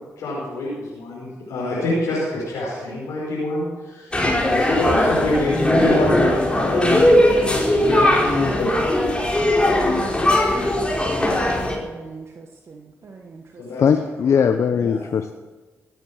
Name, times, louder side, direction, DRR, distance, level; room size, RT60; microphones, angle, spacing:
voice 1, 0.0-8.3 8.6-8.9 13.6-13.8 14.4-14.5 14.8-15.0, left 1 dB, 85° left, -7 dB, 5.5 m, -27 dB
sound 1, 4.1-11.7, left 1 dB, 20° left, 4.8 m, -19 dB
voice 2, 11.4-13.6 13.9-14.0, right 4 dB, 55° right, 2 dB, 1.5 m, -41 dB
voice 3, 13.8-15.3, left 7 dB, 65° left, 8 dB, 0.7 m, -19 dB
18.0 x 9.4 x 6.2 m, 1.3 s
supercardioid pair, 55°, 5 cm